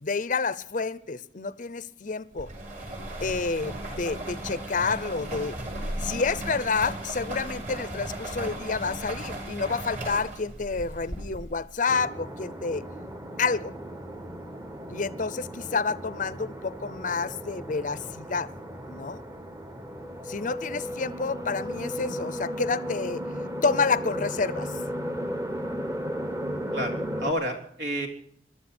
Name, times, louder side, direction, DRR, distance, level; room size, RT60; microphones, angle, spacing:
voice 1, 0.0-2.5 3.2-5.6 6.0-12.8 13.4-13.7 14.9-18.5 18.9-19.2 20.3-23.2 23.6-24.7, left 4 dB, 45° left, 0.6 m, -29 dB
sound 1, 2.4-11.7, right 1 dB, 45° right, 5.5 m, -36 dB
sound 2, 11.9-27.3, equal, 20° right, 1.2 m, -35 dB
voice 2, 26.7-28.1, equal, 70° right, 3.4 m, -30 dB
21.5 x 13.0 x 4.4 m
head